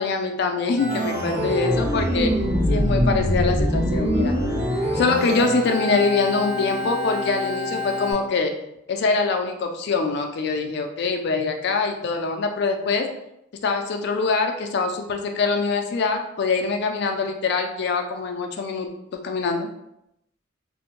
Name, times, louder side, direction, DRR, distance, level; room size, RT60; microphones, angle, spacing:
voice 1, 0.0-2.4 2.7-4.4 4.9-8.5 8.9-13.1 13.6-19.7, left 4 dB, 55° left, 5 dB, 0.3 m, -24 dB
Organ, 0.8-8.1, equal, 60° right, 1.0 m, -24 dB
2.5 x 2.1 x 2.9 m, 0.81 s
head